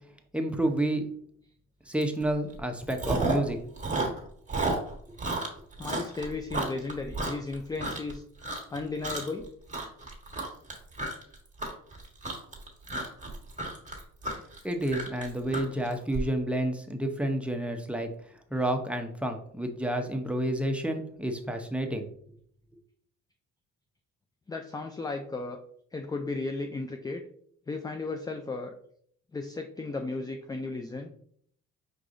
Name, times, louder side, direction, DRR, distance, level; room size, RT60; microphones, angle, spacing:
voice 1, 0.3-1.1 1.9-3.6 14.6-18.1 18.5-22.0, right 1 dB, 5° right, 4 dB, 0.7 m, -30 dB
Chewing mastication, 2.0-2.2 2.5-3.5 3.8-8.1 8.4-8.8 9.0-9.4 9.7-16.2, right 2 dB, 25° right, 1.5 m, -32 dB
voice 2, 5.8-8.2 8.7-9.5 24.5-25.6 25.9-27.2 27.7-28.8 29.3-31.1, left 3 dB, 15° left, 5 dB, 0.4 m, -35 dB
4.7 x 3.8 x 2.6 m, 0.63 s
supercardioid pair, 70°, 32 cm